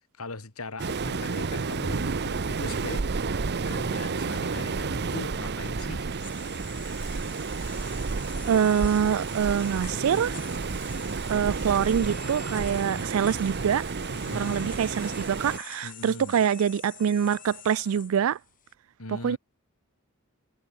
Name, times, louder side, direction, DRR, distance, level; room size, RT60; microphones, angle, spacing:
voice 1, 0.2-3.1 3.7-6.1 14.1-14.8 15.8-16.4 19.0-19.4, left 2 dB, 75° left, 2.5 m, -40 dB
Waves surf, 0.8-15.6, right 4 dB, 50° right, 0.7 m, -31 dB
sound 1, 5.9-18.7, left 11 dB, 40° left, 4.1 m, -47 dB
voice 2, 8.5-10.4 11.3-13.9 14.3-18.4 19.1-19.4, right 8 dB, 65° right, 0.3 m, -25 dB
head